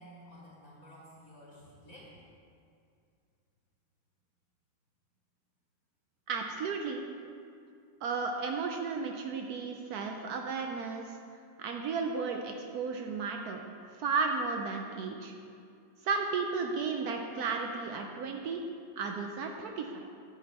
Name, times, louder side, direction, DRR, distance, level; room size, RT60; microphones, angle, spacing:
voice 1, 0.0-2.2, equal, 50° left, -6 dB, 1.7 m, -52 dB
voice 2, 6.3-7.1 8.0-11.2 11.6-13.6 14.0-15.3 16.0-18.6 19.0-20.0, right 4 dB, 75° right, 3 dB, 0.9 m, -34 dB
9.3 x 6.0 x 4.2 m, 2.4 s
omnidirectional pair, 2.1 m